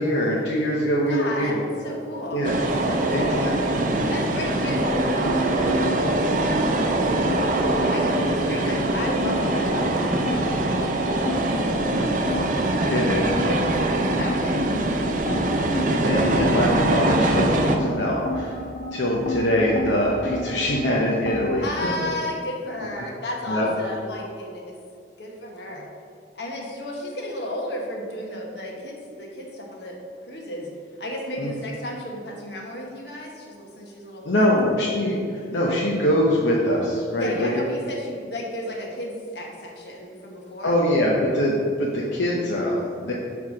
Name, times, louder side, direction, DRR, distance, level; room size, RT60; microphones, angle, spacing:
voice 1, 0.0-1.6 2.3-2.6 3.1-3.5 6.7-7.1 12.9-13.3 15.7-18.6 18.9-21.6 23.5-23.7 31.4-31.5 34.2-37.5 40.6-43.1, equal, 85° left, -4 dB, 0.9 m, -23 dB
voice 2, 1.1-2.5 2.8-3.6 4.1-7.3 7.9-12.9 13.5-14.7 21.6-24.8 25.2-25.9 26.4-30.0 30.3-30.7 31.0-34.5 37.2-40.7, left 1 dB, 70° left, -1 dB, 1.3 m, -33 dB
sound 1, 2.4-17.8, right 1 dB, 45° right, 0.6 m, -23 dB
sound 2, 5.0-21.7, left 1 dB, 45° left, 0.9 m, -33 dB
5.5 x 4.7 x 6.2 m, 2.3 s
head